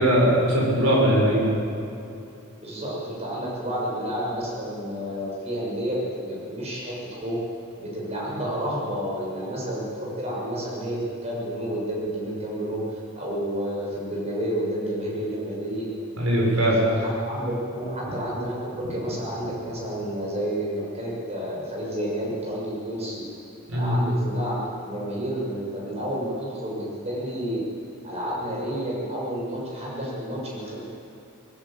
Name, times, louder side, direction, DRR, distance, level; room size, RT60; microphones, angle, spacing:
voice 1, 0.0-1.4 16.2-16.8 23.7-24.0, equal, 70° right, -3 dB, 6.7 m, -20 dB
voice 2, 2.6-7.4 7.8-12.8 13.1-15.9 16.3-23.2 23.7-27.6 28.0-30.8, equal, 30° right, -4 dB, 6.7 m, -30 dB
20.0 x 18.0 x 7.7 m, 2.7 s
head